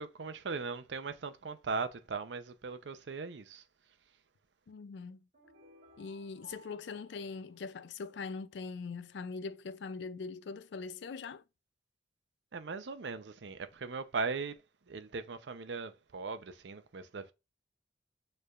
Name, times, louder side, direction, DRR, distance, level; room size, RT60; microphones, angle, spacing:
voice 1, 0.0-3.6 12.5-14.6 14.9-17.3, right 4 dB, 90° right, 0.6 m, -39 dB
voice 2, 4.7-5.2 6.0-11.4, left 4 dB, 85° left, 0.4 m, -42 dB
sound 1, 5.3-8.4, right 1 dB, 50° right, 2.9 m, -60 dB
6.6 x 3.2 x 2.4 m
head